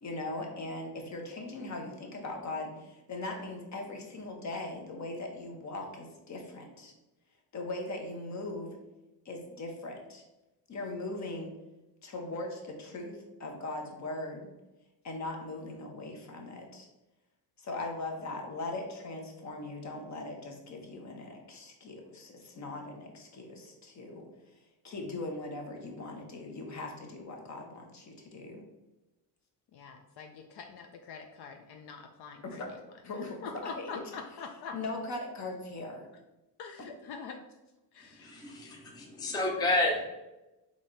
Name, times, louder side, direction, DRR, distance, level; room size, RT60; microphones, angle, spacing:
voice 1, 0.0-6.9 7.5-8.7 9.2-10.2 10.7-11.5 12.0-14.5 15.0-16.9 17.6-24.3 24.8-28.6 32.4-33.4 33.6-34.0 34.7-36.0 36.8-36.9, left 2 dB, 40° left, 2 dB, 1.0 m, -40 dB
voice 2, 29.7-32.6 33.1-34.7 36.6-37.4 37.9-38.4, left 5 dB, 65° left, 4 dB, 0.5 m, -44 dB
voice 3, 38.2-40.0, left 2 dB, 10° left, 1 dB, 0.5 m, -30 dB
4.1 x 3.1 x 3.8 m, 1.0 s
cardioid pair, 135°, 43 cm